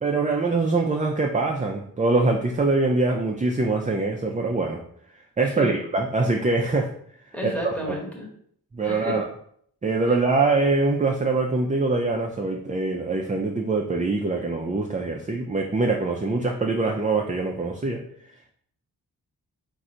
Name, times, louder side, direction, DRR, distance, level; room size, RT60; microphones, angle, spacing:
voice 1, 0.0-4.8 5.4-6.9 7.4-8.0 8.7-9.3 9.8-18.0, right 3 dB, 20° right, 1 dB, 0.4 m, -23 dB
voice 2, 7.3-8.3 8.8-9.2, left 1 dB, 5° left, -2 dB, 1.1 m, -31 dB
3.7 x 2.6 x 4.3 m, 0.64 s
wide cardioid pair, 95°, 36 cm